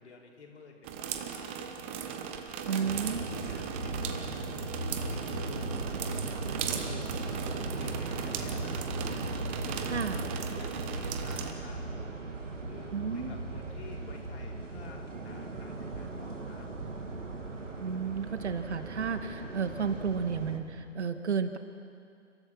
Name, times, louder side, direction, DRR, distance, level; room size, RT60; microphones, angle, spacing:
voice 1, 0.0-2.0 2.7-4.6 5.1-6.2 6.7-7.0 7.3-8.9 9.7-12.3 12.6-16.7, left 4 dB, 60° left, -1 dB, 4.6 m, -52 dB
sound 1, 0.8-11.5, right 8 dB, 10° right, 0.5 m, -38 dB
voice 2, 2.6-3.3 9.9-10.2 12.9-13.4 17.8-21.6, right 6 dB, 65° right, 8 dB, 1.8 m, -32 dB
sound 2, 2.8-20.6, right 2 dB, 80° right, 3.0 m, -37 dB
30.0 x 14.5 x 6.1 m, 2.4 s
figure-of-eight pair, 130°, 37 cm